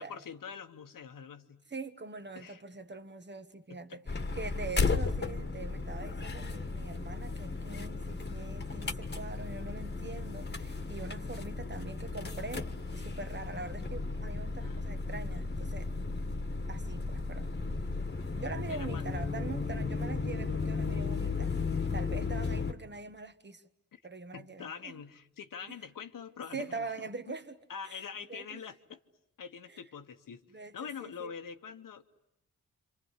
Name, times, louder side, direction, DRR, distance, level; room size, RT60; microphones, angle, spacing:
voice 1, 0.0-1.6 2.3-2.6 3.7-4.0 14.6-14.8 18.7-19.0 23.9-24.0 24.3-27.3 27.7-29.0 29.4-30.4 30.7-32.0, left 7 dB, 80° left, 1.2 m, -44 dB
voice 2, 1.7-15.9 16.7-17.5 18.3-21.5 21.9-23.6 24.0-25.0 26.5-27.6 27.8-28.0 28.3-28.6 29.7-29.8 30.5-31.4, right 3 dB, 35° right, 1.4 m, -43 dB
sound 1, 4.1-22.7, left 4 dB, 30° left, 1.5 m, -35 dB
28.0 x 26.0 x 8.2 m
cardioid pair, 70°, 33 cm